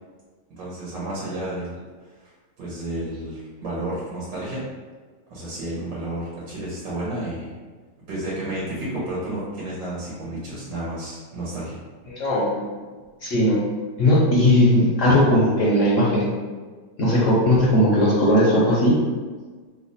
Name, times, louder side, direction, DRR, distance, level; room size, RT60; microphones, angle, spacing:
voice 1, 0.6-1.8 2.6-4.6 5.3-7.5 8.1-11.8, right 1 dB, 80° right, -7 dB, 1.6 m, -31 dB
voice 2, 12.1-12.6 13.2-13.6 14.0-16.3 17.0-19.0, left 1 dB, 65° left, -6 dB, 0.8 m, -18 dB
3.3 x 2.2 x 3.9 m, 1.4 s
omnidirectional pair, 1.9 m